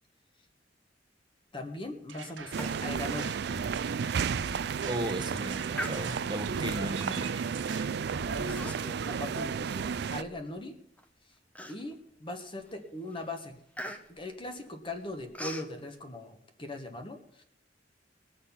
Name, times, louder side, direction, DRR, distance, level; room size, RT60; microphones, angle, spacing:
voice 1, 1.5-3.4 8.0-10.7 11.7-13.6 14.1-17.4, left 2 dB, 30° left, 5 dB, 1.3 m, -40 dB
sound 1, 2.1-8.6, right 3 dB, 90° right, 1.4 m, -42 dB
sound 2, 2.5-10.2, right 6 dB, 60° right, 0.4 m, -33 dB
Human voice, 2.6-2.9 3.2-3.3 3.8-3.9 4.5-4.8 5.7-6.5 7.2-7.4 8.5-9.1 9.5-10.5 11.0-11.1 11.6-12.1 12.6-12.8 13.1-15.7, equal, 10° left, 0.9 m, -42 dB
voice 2, 4.9-7.3, right 1 dB, 25° right, 5 dB, 1.0 m, -35 dB
19.5 x 6.6 x 5.7 m, 0.70 s
head